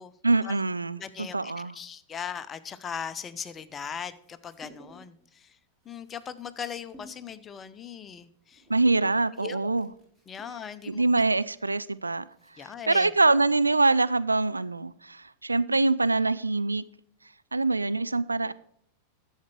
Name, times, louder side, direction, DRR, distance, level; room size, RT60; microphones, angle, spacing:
voice 1, 0.2-1.7 8.7-9.9 10.9-12.2 12.6-16.8 17.5-18.5, right 3 dB, 80° right, 0.4 m, -24 dB
voice 2, 1.0-5.6 5.8-8.6 9.4-9.8 10.3-11.0 12.6-13.1, left 7 dB, 25° left, 0.7 m, -39 dB
sound 1, 4.1-5.2 5.5-12.9, equal, 15° right, 3.2 m, -56 dB
11.5 x 7.3 x 4.5 m
figure-of-eight pair, 90°, 0 cm